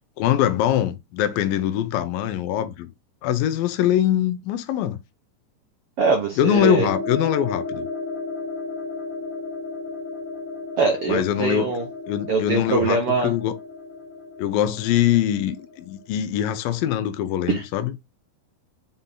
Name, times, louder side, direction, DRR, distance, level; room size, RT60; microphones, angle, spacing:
voice 1, 0.2-2.9 3.2-5.0 6.4-7.9 11.1-11.7 12.1-13.5 14.4-17.9, left 11 dB, 80° left, 2.5 m, -23 dB
voice 2, 6.0-6.9 10.8-11.8 12.3-13.3 17.5-17.6, right 4 dB, 70° right, 1.3 m, -22 dB
sound 1, 6.5-16.1, left 3 dB, 50° left, 1.0 m, -34 dB
7.0 x 4.0 x 3.9 m
omnidirectional pair, 4.1 m